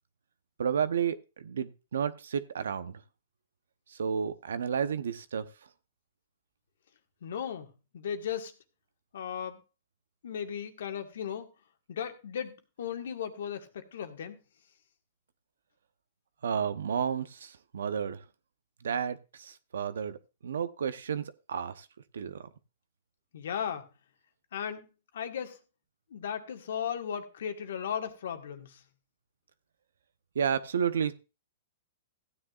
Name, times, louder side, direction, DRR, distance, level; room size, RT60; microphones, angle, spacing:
voice 1, 0.6-3.0 3.9-5.5 16.4-18.2 18.8-21.9 22.1-22.4 30.3-31.1, right 7 dB, 80° right, 0.9 m, -31 dB
voice 2, 7.2-8.5 9.1-9.6 10.2-11.5 11.9-14.4 23.3-23.9 24.5-24.9 25.1-25.6 26.1-28.8, left 8 dB, 70° left, 1.7 m, -36 dB
15.5 x 9.6 x 2.5 m
hypercardioid pair, 125°, 0 cm